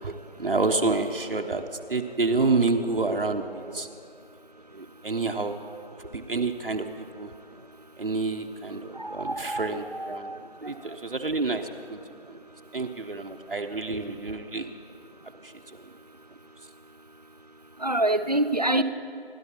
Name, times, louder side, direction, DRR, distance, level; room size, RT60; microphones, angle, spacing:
voice 1, 0.0-3.9 4.7-5.6 6.1-7.3 8.0-10.3 10.6-12.0 12.3-12.4 12.7-14.7 15.4-15.5, right 3 dB, 60° right, 4 dB, 0.9 m, -28 dB
voice 2, 9.0-10.4 17.8-18.8, right 1 dB, 40° right, 10 dB, 0.4 m, -26 dB
28.0 x 12.0 x 2.9 m, 2.5 s
figure-of-eight pair, 165°, 31 cm